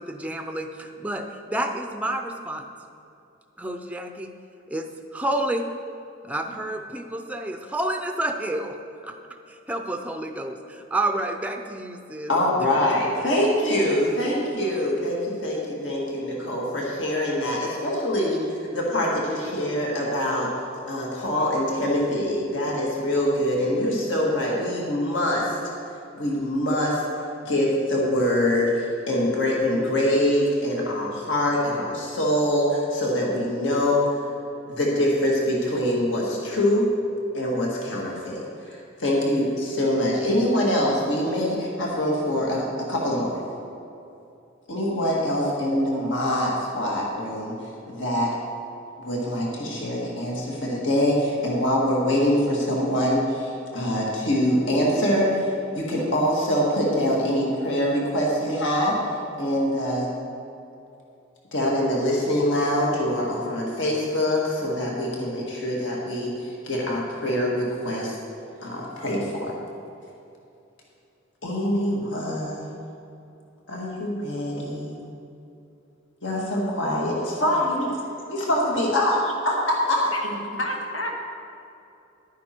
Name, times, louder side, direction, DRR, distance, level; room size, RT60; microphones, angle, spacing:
voice 1, 0.0-2.7 3.6-4.3 4.7-5.7 6.2-8.8 9.0-9.2 9.5-12.3 13.2-13.3, right 1 dB, 5° right, 5 dB, 0.6 m, -29 dB
voice 2, 12.3-20.5 20.9-25.6 26.2-27.1 27.4-34.0 34.7-36.9 37.3-43.4 44.7-47.6 47.9-48.3 49.0-59.0 59.4-60.1 61.5-68.2 68.6-69.5 71.4-72.8 73.7-75.0 76.2-77.9 78.3-80.4, left 1 dB, 65° left, -3 dB, 1.9 m, -24 dB
voice 3, 80.6-81.3, left 1 dB, 80° left, 1 dB, 1.6 m, -31 dB
11.5 x 9.4 x 4.5 m, 2.7 s
head